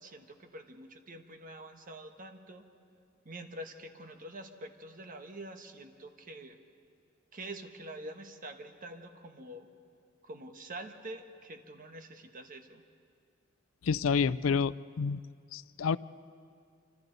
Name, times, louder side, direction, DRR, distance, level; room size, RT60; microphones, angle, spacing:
voice 1, 0.0-2.7 3.2-6.6 7.3-9.7 10.2-12.8, right 1 dB, 45° right, 6 dB, 1.3 m, -46 dB
voice 2, 13.8-15.2 15.5-16.0, left 5 dB, 85° left, 18 dB, 0.4 m, -29 dB
27.5 x 26.0 x 4.0 m, 2.3 s
head